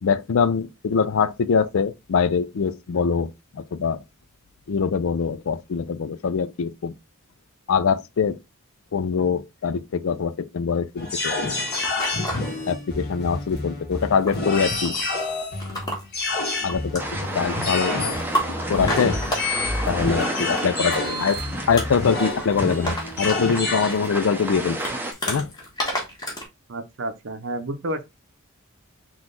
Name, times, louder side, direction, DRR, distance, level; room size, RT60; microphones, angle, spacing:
voice 1, 0.0-4.0 4.7-6.9 7.7-8.4 8.9-11.4 12.7-14.9 16.6-17.0 17.3-18.0 18.7-19.2 19.9-21.4 21.7-24.8 25.3-25.5, left 6 dB, 65° left, 0.4 m, -23 dB
sound 1, 11.0-23.9, left 2 dB, 50° left, 1.5 m, -28 dB
sound 2, 11.1-12.5 13.1-13.6 13.8-26.4, equal, 20° left, 1.3 m, -32 dB
sound 3, 17.0-25.1, right 1 dB, 10° right, 0.6 m, -32 dB
voice 2, 26.7-28.0, right 1 dB, 55° right, 0.7 m, -31 dB
3.9 x 3.0 x 3.7 m
head